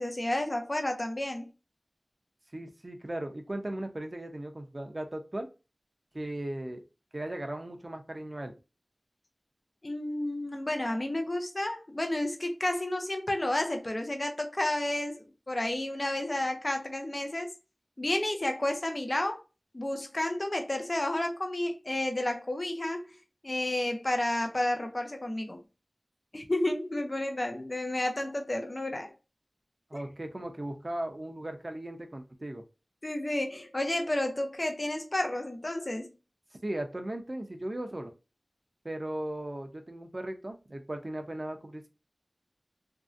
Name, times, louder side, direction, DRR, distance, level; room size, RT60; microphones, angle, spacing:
voice 1, 0.0-1.5 9.8-17.5 18.0-19.4 19.7-23.2 23.4-25.6 26.3-29.1 29.9-30.0 33.0-36.1, left 1 dB, 45° left, 0.6 m, -31 dB
voice 2, 2.5-5.5 6.1-6.8 7.1-8.5 29.9-32.6 36.6-38.1 38.8-41.9, right 1 dB, 45° right, 0.6 m, -37 dB
3.0 x 2.7 x 2.5 m
wide cardioid pair, 55°, 0 cm